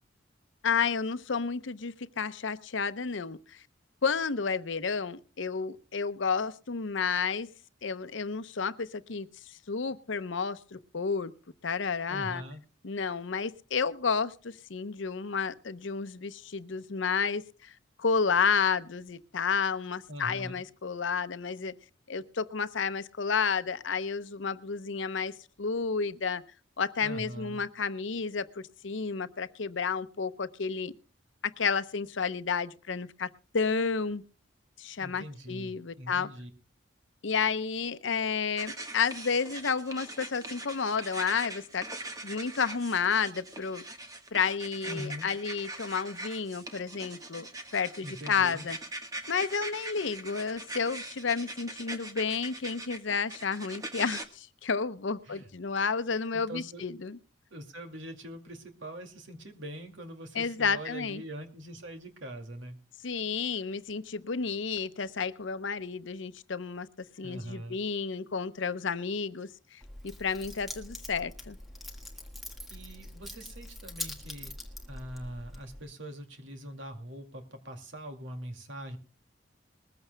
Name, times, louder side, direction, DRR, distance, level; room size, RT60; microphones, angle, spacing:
voice 1, 0.6-3.6 4.0-7.5 7.8-11.3 11.6-12.4 12.8-17.7 18.0-21.7 22.1-26.4 26.8-30.9 31.4-34.2 34.8-36.3 37.2-41.8 42.2-43.8 44.3-47.5 47.7-48.8 49.3-57.2 60.3-61.2 63.0-66.9 67.2-69.8 70.2-71.6, left 5 dB, 75° left, 12 dB, 0.7 m, -31 dB
voice 2, 12.1-12.6 20.1-20.6 27.0-27.6 35.0-36.5 44.8-45.3 48.0-48.7 55.2-55.5 56.3-56.9 57.5-62.8 67.2-67.8 72.7-74.5 74.9-79.0, equal, 75° right, 6 dB, 2.3 m, -42 dB
sound 1, 38.6-54.2, right 2 dB, 20° right, 1.3 m, -42 dB
Keys jangling, 69.8-75.8, left 1 dB, ahead, 1.6 m, -43 dB
21.0 x 14.5 x 2.2 m, 0.39 s
head